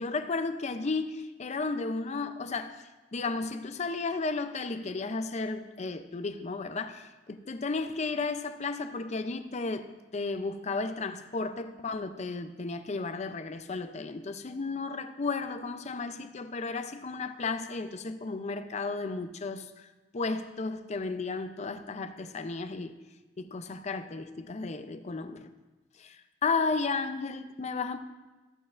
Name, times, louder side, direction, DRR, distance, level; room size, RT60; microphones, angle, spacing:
voice 1, 0.0-19.9 20.1-22.9 23.4-25.5 26.0-28.0, left 3 dB, 35° left, 9 dB, 0.5 m, -34 dB
14.5 x 8.5 x 2.5 m, 1.2 s
head